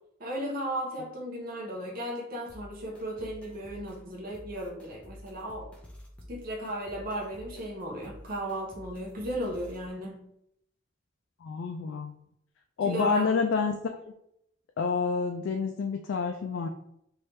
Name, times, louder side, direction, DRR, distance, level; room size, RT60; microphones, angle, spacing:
voice 1, 0.2-5.7 6.3-10.3 12.8-13.4, right 1 dB, 50° right, -2 dB, 0.8 m, -35 dB
sound 1, 2.5-9.9, equal, 5° left, 0.5 m, -50 dB
voice 2, 11.4-12.1 12.8-13.8 14.0-14.1 14.8-16.7, left 5 dB, 75° left, 4 dB, 0.3 m, -28 dB
3.4 x 2.7 x 3.1 m, 0.75 s
head